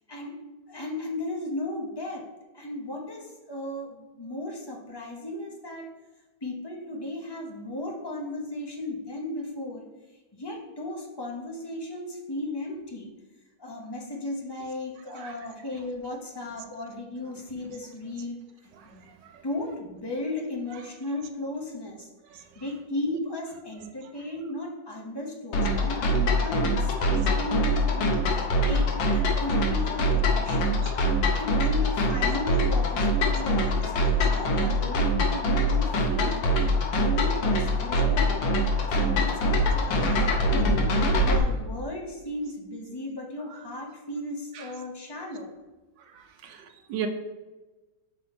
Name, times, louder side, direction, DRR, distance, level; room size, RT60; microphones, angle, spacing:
voice 1, 0.7-2.2 2.5-5.9 6.4-9.9 10.3-13.1 13.6-18.4 19.4-22.1 22.6-28.2 28.6-30.8 31.3-38.4 38.8-40.4 40.8-45.5, left 2 dB, 25° left, 0 dB, 0.5 m, -35 dB
sound 1, 25.5-41.4, equal, 85° left, 1.7 m, -24 dB
voice 2, 46.4-47.1, right 9 dB, 75° right, 6 dB, 1.2 m, -37 dB
6.4 x 4.2 x 4.3 m, 1.1 s
omnidirectional pair, 2.0 m